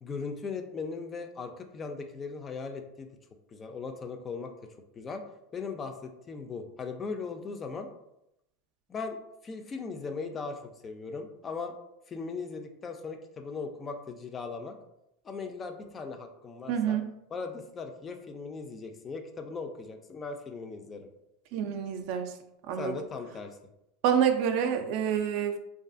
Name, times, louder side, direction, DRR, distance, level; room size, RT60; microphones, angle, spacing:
voice 1, 0.0-3.1 3.5-4.5 5.0-5.2 5.5-7.9 8.9-9.2 9.4-11.7 12.1-14.8 15.2-17.0 17.3-21.1 22.8-23.6, left 4 dB, 25° left, 6 dB, 0.3 m, -38 dB
voice 2, 16.7-17.1 21.5-22.3 22.7-22.9 24.0-25.6, right 8 dB, 60° right, 7 dB, 0.3 m, -27 dB
2.5 x 2.3 x 2.4 m, 0.84 s
supercardioid pair, 120°, 0 cm